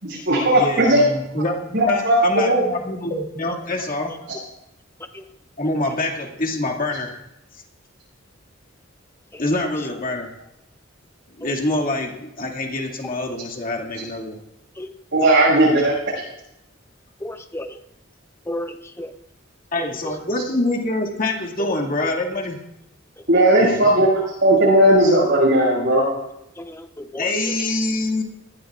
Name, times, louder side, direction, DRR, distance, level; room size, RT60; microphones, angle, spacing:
voice 1, 0.0-1.0 1.7-2.6 4.3-4.4 15.1-15.9 23.3-26.1, right 1 dB, 65° right, -6 dB, 6.1 m, -16 dB
voice 2, 0.5-4.1 5.6-7.2 9.4-10.3 11.4-14.4 19.7-22.6 23.6-24.0 27.2-28.2, left 2 dB, 45° left, 0 dB, 2.3 m, -25 dB
voice 3, 17.2-17.8 18.5-19.1 19.8-19.9 26.6-27.3, left 1 dB, 15° left, 7 dB, 0.8 m, -33 dB
20.5 x 15.5 x 2.5 m, 0.85 s
head